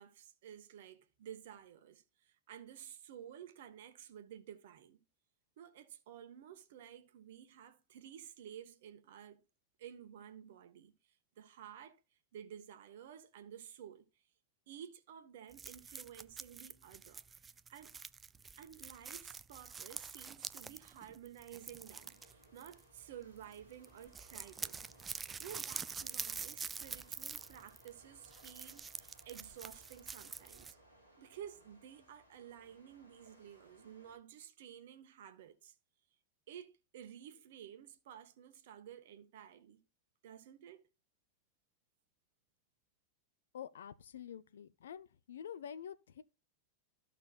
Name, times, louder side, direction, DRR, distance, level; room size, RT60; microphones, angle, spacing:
voice 1, 0.0-5.0 5.6-9.4 9.8-12.0 12.3-14.2 14.7-17.2 17.7-18.0 18.6-24.8 25.4-30.8 31.2-35.8 36.5-39.8 40.2-40.9, right 9 dB, 55° right, 1.2 m, -53 dB
sound 1, 15.5-23.1 23.4-23.6 23.8-30.7, right 5 dB, 15° right, 0.3 m, -46 dB
sound 2, 21.6-34.1, equal, 80° left, 3.3 m, -65 dB
voice 2, 43.5-46.2, left 8 dB, 65° left, 0.6 m, -48 dB
14.0 x 5.7 x 2.4 m
figure-of-eight pair, 90°, 0 cm